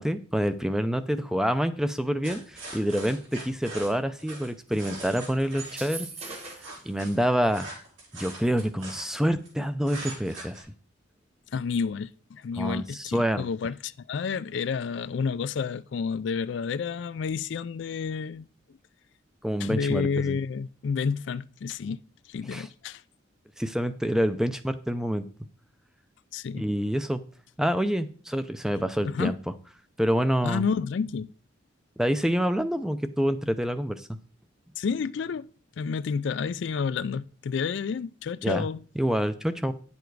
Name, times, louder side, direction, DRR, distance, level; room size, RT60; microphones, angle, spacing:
voice 1, 0.0-6.1 6.9-7.7 8.1-10.6 12.6-13.4 19.4-20.4 22.5-22.7 23.6-25.2 26.5-27.2 27.6-29.3 30.0-30.6 32.0-34.1 38.4-38.7 39.0-39.7, equal, 5° right, 0.5 m, -27 dB
sound 1, 2.2-5.8 6.2-9.5 9.8-10.6, right 2 dB, 75° right, 4.5 m, -41 dB
sound 2, 5.6-6.8, right 4 dB, 30° right, 1.6 m, -40 dB
voice 2, 11.5-18.5 19.6-22.0 22.3-23.0 26.3-26.7 29.0-29.4 30.4-31.3 34.8-35.5 35.8-38.8, left 5 dB, 60° left, 0.3 m, -30 dB
10.0 x 7.0 x 4.7 m
head